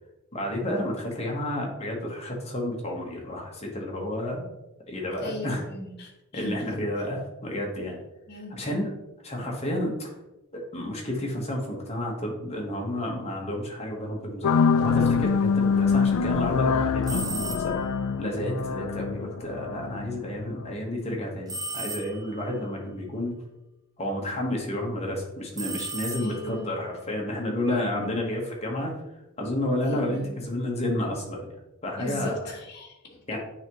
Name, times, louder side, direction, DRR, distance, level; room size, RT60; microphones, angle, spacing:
voice 1, 0.3-4.5 4.9-5.6 6.3-8.0 8.5-8.9 9.2-10.1 10.5-17.8 18.2-23.4 24.0-28.9 29.4-31.5 31.8-32.4 33.3-33.4, left 1 dB, 30° left, -1 dB, 1.2 m, -31 dB
voice 2, 5.2-6.8 8.3-8.6 26.1-26.7 27.7-28.2 29.8-30.3 32.0-33.2, left 1 dB, 45° left, 0 dB, 1.2 m, -38 dB
sound 1, 14.4-20.7, left 5 dB, 80° left, 0.4 m, -25 dB
sound 2, 17.0-18.0 21.5-22.5 25.5-26.7, right 2 dB, 15° right, 0.4 m, -35 dB
8.9 x 3.5 x 3.0 m, 0.97 s
head